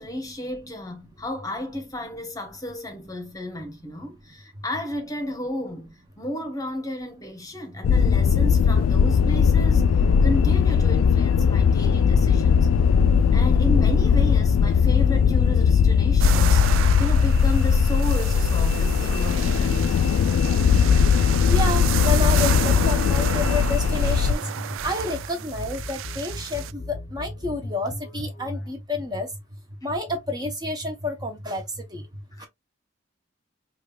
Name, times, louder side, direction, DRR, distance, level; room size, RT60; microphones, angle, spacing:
voice 1, 0.0-12.7 13.3-20.0 32.3-32.5, left 1 dB, 20° left, 0.9 m, -33 dB
sound 1, 7.8-24.3, left 6 dB, 90° left, 0.3 m, -19 dB
sound 2, 16.2-26.7, right 11 dB, 85° right, 0.3 m, -32 dB
sound 3, 17.4-28.7, left 1 dB, 40° left, 0.7 m, -38 dB
voice 2, 21.4-24.5 24.8-29.3 29.8-32.0 32.4-32.5, left 2 dB, 20° right, 0.7 m, -29 dB
5.1 x 2.4 x 2.2 m
head